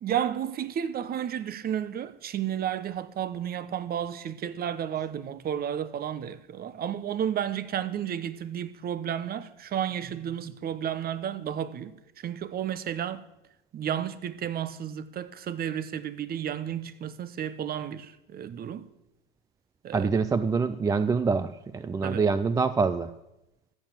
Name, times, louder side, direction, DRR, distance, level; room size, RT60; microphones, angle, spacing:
voice 1, 0.0-11.9 12.2-13.2 13.7-18.9 19.8-20.1 22.0-22.2, right 9 dB, 30° right, 0.9 m, -32 dB
voice 2, 19.9-23.1, right 4 dB, 10° right, 0.3 m, -25 dB
14.5 x 7.0 x 7.3 m
hypercardioid pair, 100°, 30 cm